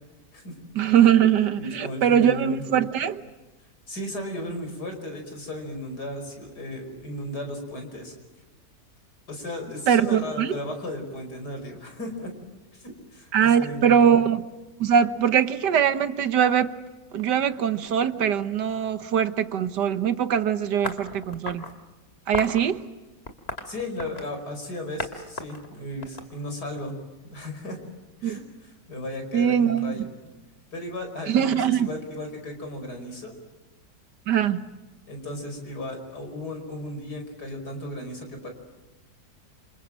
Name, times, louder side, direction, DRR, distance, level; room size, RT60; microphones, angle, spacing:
voice 1, 0.8-3.2 9.9-10.5 13.3-14.4 14.8-16.7 17.1-21.6 22.3-22.8 28.2-28.4 29.3-30.1 31.3-31.9 34.3-34.6, right 8 dB, 80° right, 1.7 m, -22 dB
voice 2, 1.6-2.6 3.9-8.1 9.3-12.3 12.7-14.2 23.7-27.0 27.2-27.8 28.2-30.3 30.7-33.3 35.1-38.5, left 1 dB, 70° left, 5.8 m, -35 dB
sound 1, 20.8-21.7 22.3-22.6 23.3-24.4 25.0-25.1 25.4-26.8, left 3 dB, 35° left, 2.6 m, -34 dB
28.5 x 27.0 x 7.6 m
omnidirectional pair, 1.8 m